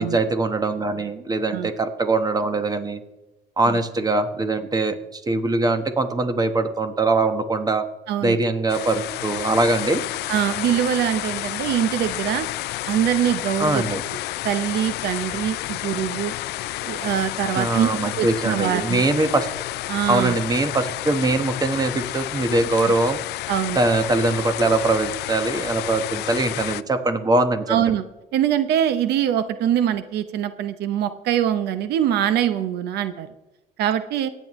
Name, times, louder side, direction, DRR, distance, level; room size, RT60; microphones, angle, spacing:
voice 1, 0.0-3.0 3.6-7.8 8.2-10.0 13.6-14.0 17.6-19.5 20.1-23.2 23.8-27.8, right 2 dB, 20° right, 9 dB, 1.2 m, -22 dB
voice 2, 8.1-8.4 10.3-12.5 12.9-13.8 14.4-16.3 16.8-19.0 19.9-20.4 22.8-22.9 23.5-23.8 27.7-28.0 28.3-33.3 33.8-34.3, right 10 dB, 75° right, 12 dB, 0.8 m, -23 dB
sound 1, 8.7-26.8, left 17 dB, 75° left, 0.4 m, -30 dB
22.5 x 9.2 x 3.1 m, 1.0 s
cardioid pair, 110°, 17 cm